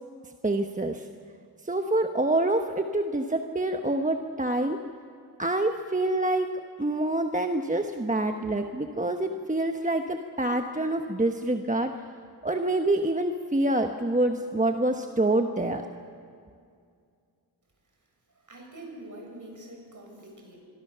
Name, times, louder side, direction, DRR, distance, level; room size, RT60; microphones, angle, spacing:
voice 1, 0.4-1.0 1.7-4.8 5.4-12.0 12.4-15.8, right 2 dB, 20° right, 5 dB, 1.1 m, -26 dB
voice 2, 18.5-20.6, right 1 dB, 45° right, 1 dB, 6.9 m, -45 dB
24.5 x 23.5 x 6.9 m, 2.3 s
cardioid pair, 70°, 42 cm